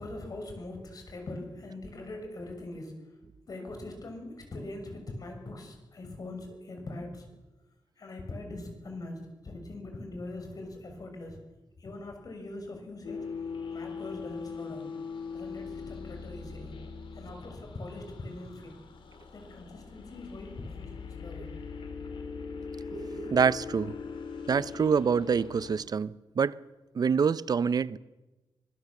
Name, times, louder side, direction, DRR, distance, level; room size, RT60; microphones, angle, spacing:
voice 1, 0.0-3.0 3.5-7.3 8.0-11.4 11.8-13.3 13.7-14.9 15.3-16.7 17.1-18.8 19.3-21.5, left 2 dB, 50° left, 6.3 m, -42 dB
sound 1, 13.0-25.8, left 5 dB, 80° left, 3.3 m, -41 dB
voice 2, 22.9-23.9 24.5-26.6 26.9-28.0, right 6 dB, 50° right, 0.7 m, -26 dB
24.5 x 21.0 x 7.2 m
wide cardioid pair, 125°, 8 cm